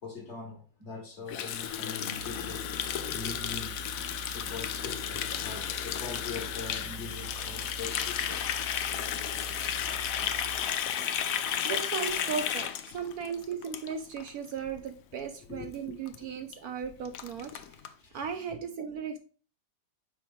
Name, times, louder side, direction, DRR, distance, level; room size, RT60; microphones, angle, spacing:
voice 1, 0.0-2.6 3.1-3.8 4.3-8.4 9.7-9.9 10.9-11.2 13.2-13.3 15.5-16.0 17.4-18.2 18.5-18.6, left 4 dB, 45° left, 2 dB, 1.5 m, -42 dB
Water tap faucet, 1.3-14.3 14.6-14.8 15.1-15.5 15.7-15.8 16.1-16.2 16.5-16.6 16.8-17.9, left 9 dB, 70° left, 0.8 m, -33 dB
sound 1, 2.1-10.8, right 4 dB, 85° left, 1.6 m, -45 dB
sound 2, 5.5-11.8, left 2 dB, 20° left, 0.9 m, -57 dB
voice 2, 11.6-17.5 18.1-19.2, right 6 dB, 70° right, 6 dB, 1.0 m, -36 dB
6.0 x 4.4 x 3.6 m, 0.38 s
omnidirectional pair, 1.9 m